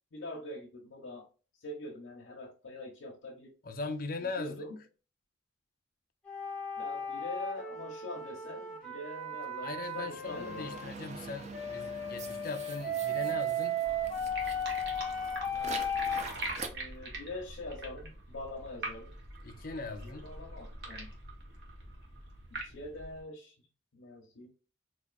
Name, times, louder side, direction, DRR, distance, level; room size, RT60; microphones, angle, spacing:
voice 1, 0.1-1.3 1.6-3.5 4.4-4.8 6.8-10.8 15.5-15.9 16.7-19.2 20.0-21.1 22.5-23.6 23.9-24.5, left 1 dB, 85° left, 0.7 m, -44 dB
voice 2, 3.6-4.6 9.6-13.8 19.4-20.3, left 3 dB, 45° left, 0.5 m, -40 dB
sound 1, 6.3-10.9 11.5-16.3, equal, 5° left, 1.1 m, -35 dB
sound 2, 9.8-16.7, right 4 dB, 35° right, 0.4 m, -45 dB
sound 3, 13.8-23.2, right 2 dB, 55° right, 1.1 m, -43 dB
4.1 x 2.5 x 2.3 m
head